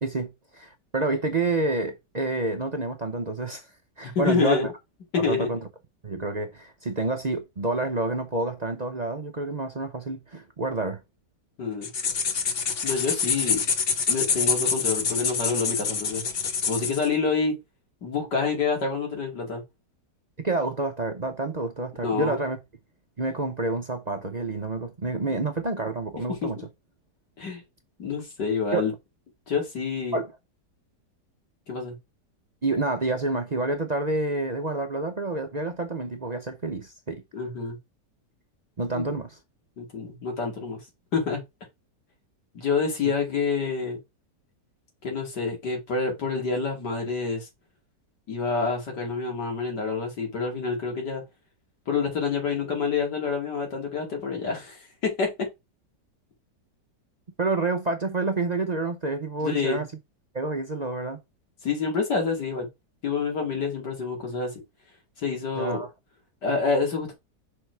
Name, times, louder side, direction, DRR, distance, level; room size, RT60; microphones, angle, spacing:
voice 1, 0.0-3.7 4.0-4.7 5.2-5.6 6.0-11.0 20.4-22.6 23.2-26.6 28.7-28.9 30.1-30.3 32.6-37.2 38.8-39.4 57.4-59.9 60.3-61.2 65.6-65.9, right 3 dB, 40° right, 0.6 m, -28 dB
voice 2, 4.0-4.7 5.1-5.5 11.6-11.9 12.8-13.6 14.1-16.2 16.7-17.6 18.0-19.6 22.0-22.4 26.3-26.4 27.4-27.6 28.0-28.9 29.5-30.2 31.7-32.0 37.3-37.8 38.9-39.0 39.8-40.8 41.1-41.4 42.5-44.0 45.0-47.5 48.3-51.2 51.9-55.5 59.4-59.8 61.6-62.7 63.0-64.6 65.2-65.8 66.4-67.1, left 5 dB, 80° left, 3.1 m, -27 dB
sound 1, 11.8-17.1, left 5 dB, 45° left, 0.9 m, -26 dB
6.2 x 4.1 x 4.5 m
omnidirectional pair, 1.8 m